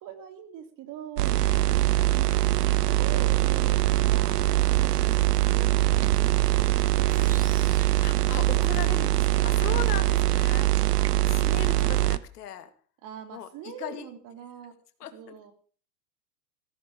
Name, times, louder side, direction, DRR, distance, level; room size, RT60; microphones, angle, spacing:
voice 1, 0.0-1.4 2.1-6.7 7.0-7.8 9.7-10.0 13.0-14.7 15.1-15.5, right 8 dB, 40° right, 8 dB, 3.4 m, -43 dB
sound 1, 1.2-12.2, right 16 dB, 75° right, 1.0 m, -23 dB
voice 2, 1.4-1.9 8.0-10.7 11.3-12.7 13.3-14.1 15.0-15.3, left 9 dB, 75° left, 9 dB, 2.3 m, -38 dB
sound 2, 7.1-9.0, right 4 dB, 15° right, 2.4 m, -48 dB
15.0 x 14.0 x 5.0 m, 0.42 s
hypercardioid pair, 105°, 48 cm